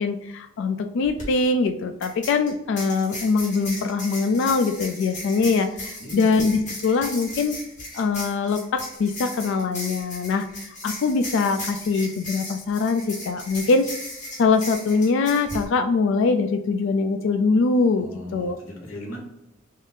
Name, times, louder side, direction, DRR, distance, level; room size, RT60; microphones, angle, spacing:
voice 1, 0.0-7.6 7.9-13.9 14.4-18.6, left 4 dB, 65° left, 8 dB, 0.3 m, -23 dB
sound 1, 1.0-1.2 2.0-15.6, left 1 dB, 40° left, 1.4 m, -36 dB
voice 2, 6.0-6.3 17.9-19.2, left 1 dB, 85° left, -1 dB, 1.1 m, -37 dB
3.6 x 2.6 x 3.8 m, 0.88 s
head